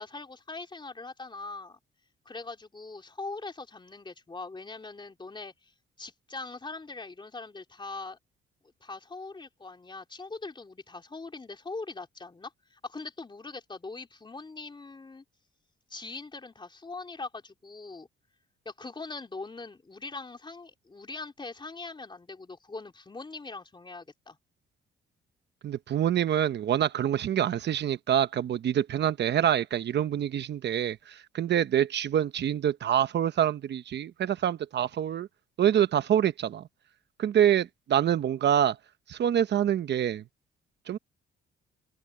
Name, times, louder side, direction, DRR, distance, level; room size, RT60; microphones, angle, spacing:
voice 1, 0.0-1.8 2.2-5.7 6.0-8.2 8.8-15.2 15.9-18.1 18.6-24.4, left 3 dB, 25° left, 3.4 m, -41 dB
voice 2, 25.6-35.3 35.6-36.7 37.2-38.8 39.1-40.2 40.9-41.0, right 10 dB, 60° right, 1.0 m, -26 dB
open air
cardioid pair, 90°, 20 cm